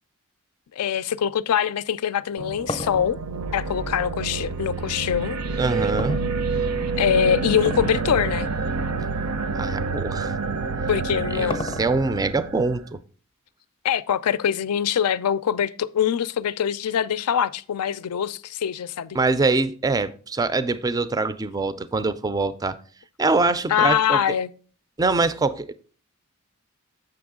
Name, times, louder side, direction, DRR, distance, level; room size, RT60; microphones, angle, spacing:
voice 1, 0.8-3.2 3.5-5.4 7.0-8.5 10.9-11.6 13.8-19.2 23.7-24.5, left 8 dB, 80° left, 0.4 m, -23 dB
sound 1, 2.1-4.6 6.0-6.9 7.6-8.0 8.4-8.5 9.2-9.3 10.7-12.2, left 2 dB, 25° left, 0.6 m, -34 dB
sound 2, 2.4-12.9, right 4 dB, 75° right, 0.6 m, -28 dB
voice 2, 5.6-6.2 9.5-10.3 11.3-13.0 19.1-22.8 23.2-24.2 25.0-25.7, right 3 dB, 15° right, 0.3 m, -24 dB
7.7 x 6.0 x 3.6 m
head